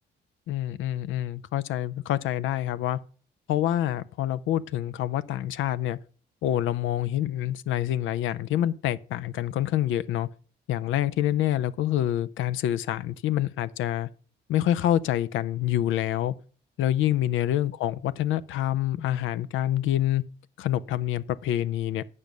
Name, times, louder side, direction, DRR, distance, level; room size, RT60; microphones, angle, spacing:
voice 1, 0.5-3.0 3.5-6.0 6.4-10.3 10.7-14.1 14.5-16.3 16.8-20.2 20.6-22.0, left 12 dB, 80° left, 0.6 m, -26 dB
8.7 x 5.3 x 6.0 m
cardioid pair, 90°, 20 cm